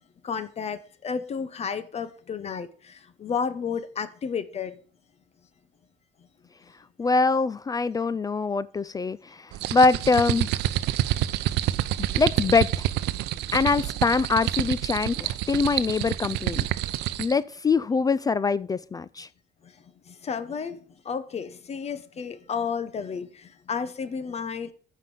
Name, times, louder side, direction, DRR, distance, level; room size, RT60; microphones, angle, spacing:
voice 1, 0.2-4.7 11.2-11.3 11.6-11.8 12.1-12.2 13.3-13.4 19.6-19.7 20.1-24.7, left 6 dB, 40° left, 0.9 m, -32 dB
voice 2, 7.0-10.5 12.2-12.9 13.5-16.7 17.2-19.3, left 4 dB, 20° left, 0.4 m, -23 dB
sound 1, 9.5-17.4, right 14 dB, 85° right, 0.6 m, -28 dB
9.4 x 5.2 x 7.5 m
cardioid pair, 110°, 17 cm